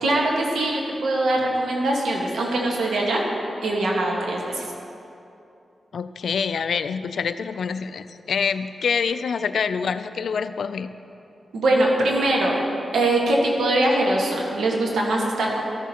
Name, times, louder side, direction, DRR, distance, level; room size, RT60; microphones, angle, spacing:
voice 1, 0.0-3.3 3.6-4.6 11.5-12.6 12.9-15.6, right 1 dB, 85° right, -1 dB, 1.4 m, -22 dB
voice 2, 5.9-10.9, left 6 dB, 75° left, 12 dB, 0.3 m, -26 dB
14.0 x 7.1 x 2.9 m, 2.7 s
cardioid pair, 60°, 0 cm